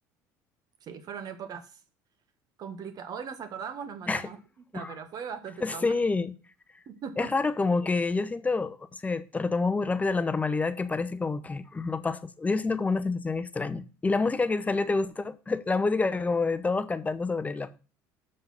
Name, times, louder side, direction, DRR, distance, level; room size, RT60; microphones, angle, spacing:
voice 1, 0.8-1.7 2.6-4.4 4.7-5.9 6.9-7.3, right 7 dB, 50° right, 1.4 m, -39 dB
voice 2, 5.6-6.3 7.2-17.7, left 3 dB, 15° left, 0.8 m, -28 dB
6.6 x 5.7 x 5.7 m
supercardioid pair, 85°, 8 cm